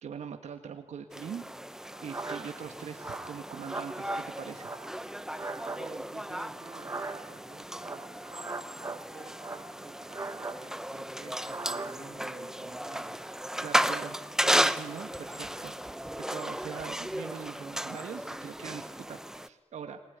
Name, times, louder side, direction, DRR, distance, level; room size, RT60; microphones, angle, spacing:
voice 1, 0.0-1.4 2.0-4.7 13.6-14.2 14.4-15.7 16.2-20.0, right 7 dB, 90° right, 5 dB, 1.7 m, -42 dB
sound 1, 1.1-19.5, equal, 5° right, 1.0 m, -35 dB
sound 2, 1.9-2.6 2.9-4.2 4.5-5.8 6.6-7.4 7.8-9.0 9.3-10.6 11.4-12.0, right 3 dB, 25° right, 2.2 m, -40 dB
voice 2, 5.8-8.2 8.8-13.2, right 5 dB, 50° right, 6 dB, 2.7 m, -51 dB
30.0 x 20.0 x 9.5 m, 1.0 s
cardioid pair, 95°, 11 cm